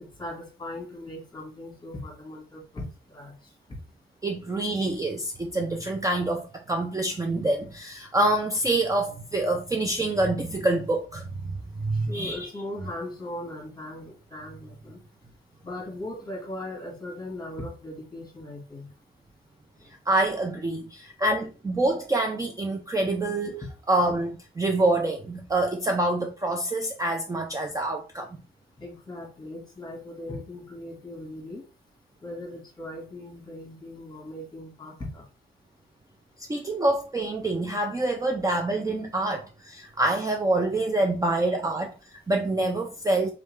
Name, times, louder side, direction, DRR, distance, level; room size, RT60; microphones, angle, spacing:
voice 1, 0.0-3.3 11.9-15.0 15.6-18.9 28.8-31.6 32.2-35.3, left 1 dB, 20° left, 1.5 m, -39 dB
voice 2, 4.2-12.4 20.1-28.3 36.4-43.3, right 2 dB, 15° right, 0.4 m, -26 dB
3.7 x 3.4 x 3.1 m
wide cardioid pair, 160°, 21 cm